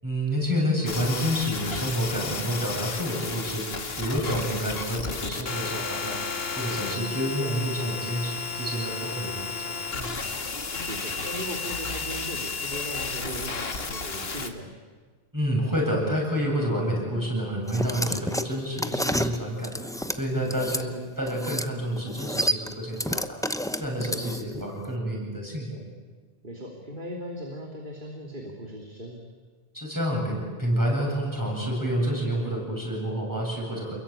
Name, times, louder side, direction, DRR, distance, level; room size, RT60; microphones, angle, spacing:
voice 1, 0.0-6.2 6.5-10.2 15.3-19.7 20.1-23.4 23.7-25.8 29.7-34.0, equal, 20° right, -1 dB, 7.9 m, -29 dB
sound 1, 0.9-14.5, left 4 dB, 75° left, 2.0 m, -33 dB
voice 2, 10.8-14.7 20.3-20.5 26.4-29.2, equal, 55° right, 1 dB, 3.1 m, -38 dB
sound 2, 17.7-20.8 21.3-21.7 22.0-24.6, equal, 5° left, 0.8 m, -30 dB
28.5 x 22.0 x 9.0 m, 1.5 s
omnidirectional pair, 1.0 m